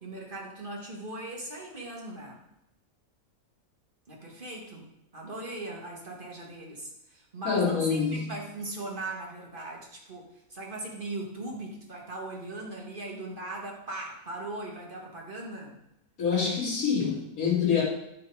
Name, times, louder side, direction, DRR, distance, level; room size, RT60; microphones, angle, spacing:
voice 1, 0.0-2.4 4.1-4.9 5.1-15.8, right 2 dB, 35° right, -1 dB, 1.8 m, -39 dB
voice 2, 7.4-8.3 16.2-17.8, left 6 dB, 70° left, -7 dB, 2.9 m, -26 dB
12.0 x 4.2 x 4.7 m, 0.86 s
omnidirectional pair, 1.5 m